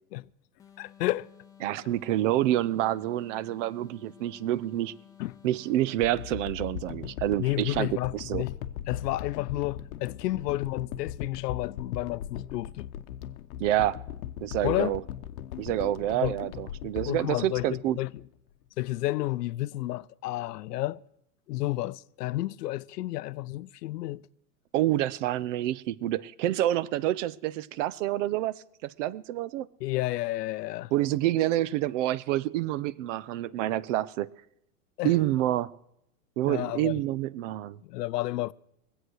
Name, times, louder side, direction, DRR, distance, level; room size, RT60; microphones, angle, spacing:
sound 1, 0.6-6.5, left 9 dB, 5° left, 0.6 m, -54 dB
voice 1, 0.8-1.3 5.2-5.4 7.4-8.6 8.9-12.9 14.6-15.0 16.2-16.4 17.1-18.1 18.8-21.0 21.5-24.2 29.8-30.9 35.0-35.2 36.5-37.0 37.8-38.5, left 17 dB, 85° left, 0.6 m, -31 dB
voice 2, 1.6-4.9 5.4-8.4 13.6-14.0 14.4-15.0 15.6-18.0 24.7-29.7 30.9-34.3 35.0-35.8 36.4-37.8, right 14 dB, 50° right, 0.6 m, -28 dB
sound 2, 6.0-18.2 18.8-18.9, left 11 dB, 65° left, 0.9 m, -39 dB
20.5 x 8.0 x 6.4 m
supercardioid pair, 140°, 47 cm